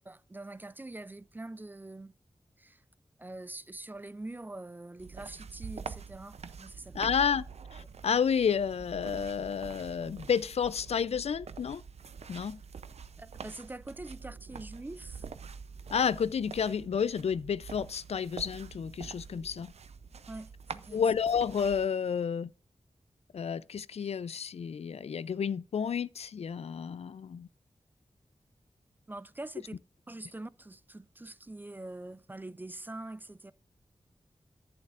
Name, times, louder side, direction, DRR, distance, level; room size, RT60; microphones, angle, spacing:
voice 1, 0.1-2.2 2.6-2.8 3.2-7.1 13.2-15.3 20.3-21.0 29.1-29.8 30.1-33.5, right 2 dB, 15° right, 0.3 m, -44 dB
sound 1, 5.0-21.9, right 6 dB, 80° right, 0.5 m, -46 dB
voice 2, 6.9-7.4 7.7-11.8 12.3-12.6 15.9-19.7 20.9-22.5 23.3-27.5, left 7 dB, 75° left, 0.4 m, -30 dB
10.5 x 8.7 x 2.4 m
wide cardioid pair, 105°, 11 cm